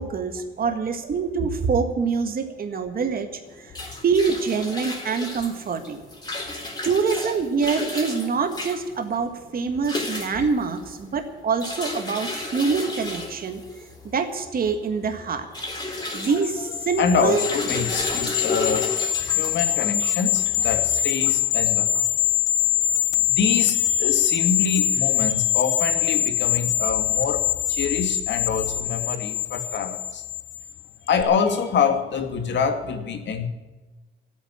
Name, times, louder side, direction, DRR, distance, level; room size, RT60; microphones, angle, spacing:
voice 1, 0.0-3.7 4.0-6.0 6.8-13.6 14.0-15.5 16.1-17.4, right 5 dB, 45° right, 6 dB, 1.8 m, -25 dB
sound 1, 3.5-22.0, left 2 dB, 20° left, 3.6 m, -34 dB
voice 2, 16.0-16.4 17.0-18.9 19.2-22.4 23.2-30.2 31.1-33.5, left 6 dB, 65° left, 6 dB, 2.2 m, -26 dB
sound 2, 16.1-30.7 31.1-31.2, left 12 dB, 85° left, 0.9 m, -24 dB
12.5 x 8.9 x 10.0 m, 1.2 s
cardioid pair, 90°, 20 cm